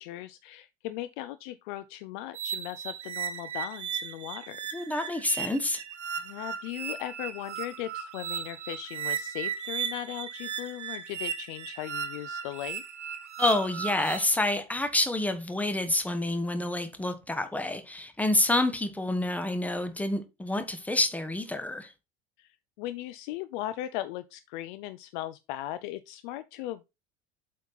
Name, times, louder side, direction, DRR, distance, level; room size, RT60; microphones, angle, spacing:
voice 1, 0.0-4.6 6.2-12.8 22.4-26.8, left 14 dB, 45° left, 0.5 m, -38 dB
sound 1, 2.3-14.2, right 8 dB, 70° right, 1.2 m, -36 dB
voice 2, 4.7-5.8 13.4-21.9, left 2 dB, 5° left, 1.0 m, -28 dB
7.9 x 4.2 x 4.2 m
figure-of-eight pair, 75°, 36 cm